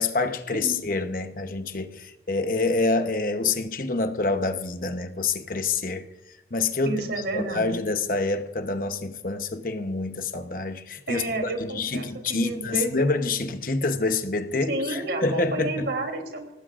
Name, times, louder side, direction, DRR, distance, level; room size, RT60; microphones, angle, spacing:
voice 1, 0.0-6.1 6.5-7.0 7.3-15.9, left 3 dB, 50° left, 1.0 m, -27 dB
voice 2, 0.5-0.9 6.9-7.7 11.1-13.1 14.7-16.5, right 2 dB, 70° right, 3.2 m, -31 dB
24.5 x 18.5 x 2.5 m
head